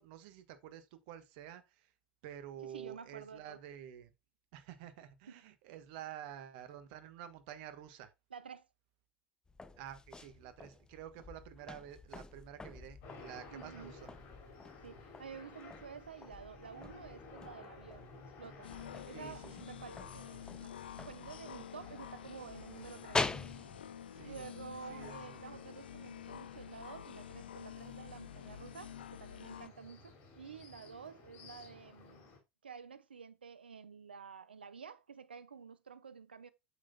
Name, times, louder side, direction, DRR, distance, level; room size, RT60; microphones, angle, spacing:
voice 1, 0.0-1.9 2.2-4.1 4.5-8.1 9.8-14.1 19.1-19.6 24.1-24.5 24.9-25.6, right 10 dB, 60° right, 1.5 m, -50 dB
voice 2, 2.6-3.6 5.3-5.4 8.3-8.7 13.5-13.9 14.8-18.7 19.1-20.8 21.1-23.2 24.1-32.3 32.6-36.5, right 6 dB, 80° right, 0.8 m, -50 dB
sound 1, 9.5-23.9, left 3 dB, 15° left, 0.9 m, -45 dB
sound 2, 13.0-32.4, left 4 dB, 50° left, 4.2 m, -56 dB
sound 3, 18.6-29.7, left 9 dB, 75° left, 0.4 m, -49 dB
8.2 x 7.7 x 2.3 m
figure-of-eight pair, 75°, 5 cm